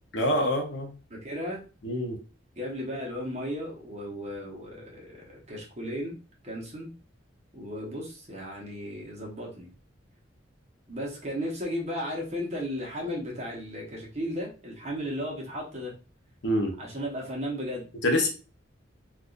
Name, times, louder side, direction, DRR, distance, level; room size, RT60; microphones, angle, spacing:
voice 1, 0.1-0.9 1.8-2.2 16.4-16.7 18.0-18.3, left 1 dB, 70° left, 2 dB, 0.8 m, -25 dB
voice 2, 1.1-1.6 2.6-6.2 6.4-6.9 7.5-9.7 10.9-15.9 16.8-17.9, equal, 35° right, -3 dB, 1.1 m, -35 dB
3.5 x 2.4 x 2.5 m, 0.34 s
head